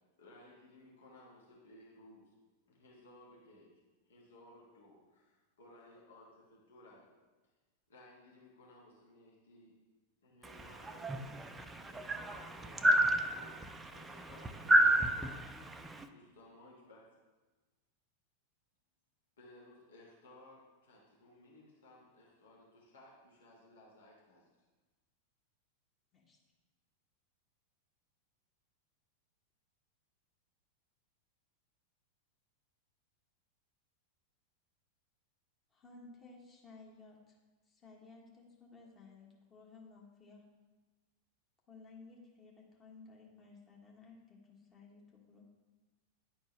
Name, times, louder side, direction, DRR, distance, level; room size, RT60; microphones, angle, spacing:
voice 1, 0.2-2.3 2.7-3.7 4.1-7.1 7.9-9.7 10.2-11.4 11.8-12.9 13.3-13.6 13.9-14.7 16.1-17.0 19.4-24.5, left 1 dB, 65° left, -4 dB, 1.4 m, -59 dB
voice 2, 10.4-16.1, right 1 dB, 10° right, 6 dB, 0.4 m, -31 dB
voice 3, 35.7-37.4 37.7-40.4 41.7-45.5, left 3 dB, 25° left, -2 dB, 1.3 m, -56 dB
9.9 x 4.3 x 3.1 m, 1.2 s
figure-of-eight pair, 90°, 0 cm